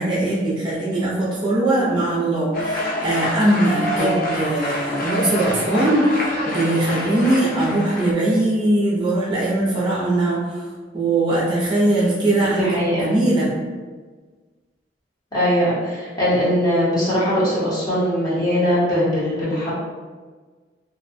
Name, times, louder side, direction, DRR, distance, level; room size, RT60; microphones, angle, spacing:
voice 1, 0.0-10.6 10.9-13.5, right 1 dB, 25° right, -7 dB, 0.5 m, -20 dB
sound 1, 2.5-8.1, equal, 50° left, 0.5 m, -27 dB
voice 2, 12.6-13.1 15.3-19.8, equal, 20° left, -9 dB, 0.8 m, -20 dB
2.5 x 2.1 x 2.5 m, 1.4 s
head